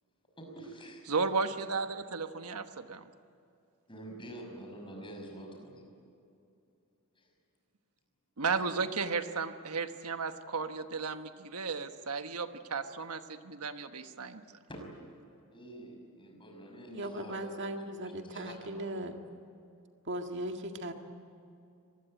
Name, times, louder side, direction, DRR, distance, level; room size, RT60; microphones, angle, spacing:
voice 1, 0.4-1.1 3.9-5.9 7.2-7.3 14.7-14.8 15.5-17.5 18.0-18.9, right 1 dB, 25° left, 1 dB, 6.0 m, -47 dB
voice 2, 1.1-3.0 8.4-14.4, right 4 dB, 85° right, 8 dB, 1.3 m, -34 dB
voice 3, 16.9-19.2 20.1-20.9, right 1 dB, 55° right, 4 dB, 1.9 m, -38 dB
25.0 x 20.0 x 9.1 m, 2.6 s
head